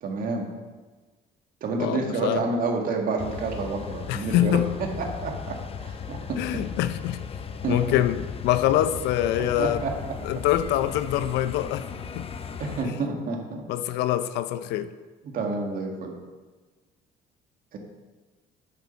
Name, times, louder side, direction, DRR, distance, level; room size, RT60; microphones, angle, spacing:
voice 1, 0.0-0.5 1.6-6.7 7.6-7.8 9.6-10.2 12.6-13.6 15.2-16.1 17.7-17.8, right 3 dB, 55° right, 1 dB, 1.9 m, -29 dB
voice 2, 1.8-2.4 4.1-4.7 6.4-7.2 7.7-9.8 10.2-11.8 12.1-12.3 12.8-13.0 13.7-14.9, left 12 dB, 90° left, 12 dB, 0.6 m, -25 dB
sound 1, 3.2-12.8, left 6 dB, 35° left, 0.7 m, -37 dB
8.5 x 6.7 x 5.8 m, 1.3 s
cardioid pair, 110°, 17 cm